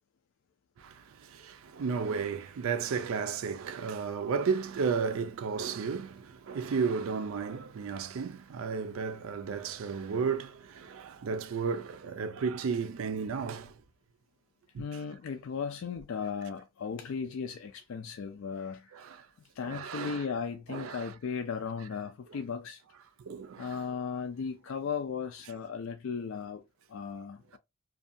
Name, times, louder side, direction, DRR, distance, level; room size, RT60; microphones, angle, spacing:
voice 1, 0.8-13.7 14.7-14.8 18.9-19.3 19.6-20.2 20.7-21.1 23.2-23.8, right 5 dB, 75° right, 0.4 m, -33 dB
voice 2, 14.8-18.9 19.6-22.8 23.6-26.6 26.9-27.6, left 6 dB, 65° left, 0.3 m, -36 dB
2.6 x 2.3 x 2.5 m
head